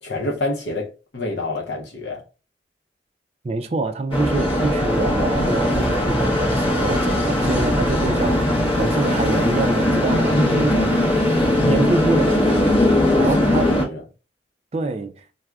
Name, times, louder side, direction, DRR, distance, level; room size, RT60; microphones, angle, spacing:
voice 1, 0.0-2.2 10.3-10.7 12.9-14.0, left 2 dB, 65° left, 0.6 m, -28 dB
voice 2, 3.4-11.1 11.6-12.8 13.2-13.8 14.7-15.2, right 3 dB, 35° right, 0.3 m, -25 dB
sound 1, 4.1-13.9, left 1 dB, 30° left, 0.7 m, -19 dB
4.6 x 2.1 x 2.2 m
head